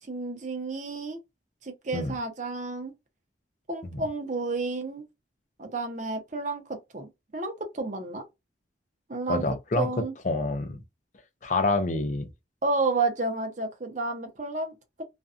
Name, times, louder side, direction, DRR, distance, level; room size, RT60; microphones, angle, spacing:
voice 1, 0.0-1.2 1.6-2.9 3.7-5.0 5.6-8.2 9.1-9.4 9.8-10.1 12.6-14.8, right 3 dB, 40° right, 0.7 m, -31 dB
voice 2, 9.3-9.9 10.2-10.8 11.4-12.3, left 2 dB, 40° left, 0.5 m, -27 dB
2.5 x 2.2 x 2.4 m
head